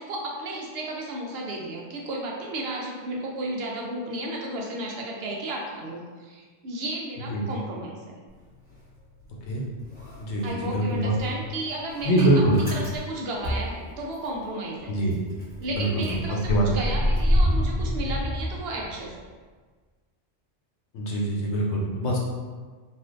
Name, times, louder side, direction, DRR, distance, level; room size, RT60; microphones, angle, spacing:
voice 1, 0.0-8.2 10.4-12.3 12.7-15.0 15.6-19.1, right 1 dB, 65° right, -1 dB, 0.8 m, -33 dB
Motor vehicle (road) / Engine starting, 8.3-9.5 9.8-14.5 14.8-14.9 15.1-19.2, equal, 10° left, 0.8 m, -28 dB
voice 2, 10.2-11.1 12.0-12.6 14.9-15.2 15.8-16.0 16.5-16.7 20.9-22.2, right 1 dB, 80° left, -2 dB, 1.0 m, -23 dB
3.3 x 2.5 x 2.4 m, 1.4 s
omnidirectional pair, 1.2 m